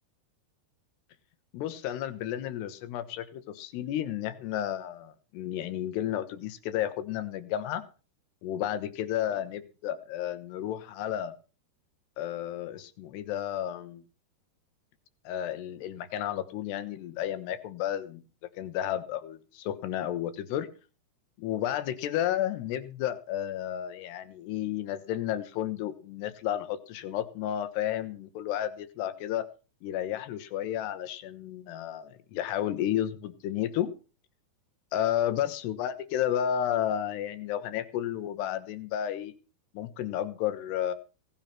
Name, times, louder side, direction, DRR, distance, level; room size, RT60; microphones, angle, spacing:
voice 1, 1.5-7.8 8.4-11.3 12.2-14.0 15.3-20.7 21.4-29.5 29.8-33.9 34.9-39.3 39.7-40.9, left 11 dB, 85° left, 12 dB, 3.3 m, -32 dB
17.5 x 9.8 x 5.8 m, 0.35 s
omnidirectional pair, 4.7 m